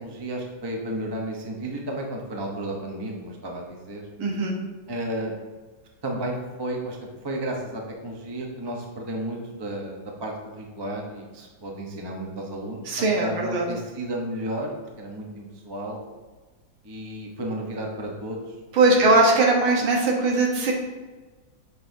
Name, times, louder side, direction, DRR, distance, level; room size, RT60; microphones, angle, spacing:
voice 1, 0.0-4.1 4.9-5.4 6.0-7.0 7.2-12.8 13.2-14.7 15.0-16.0 16.8-18.6 18.9-19.3, right 1 dB, 30° right, 0 dB, 0.4 m, -33 dB
voice 2, 4.2-4.5 12.9-13.7 18.7-20.7, right 2 dB, 90° right, 0 dB, 2.0 m, -20 dB
8.3 x 5.5 x 2.7 m, 1.3 s
omnidirectional pair, 2.2 m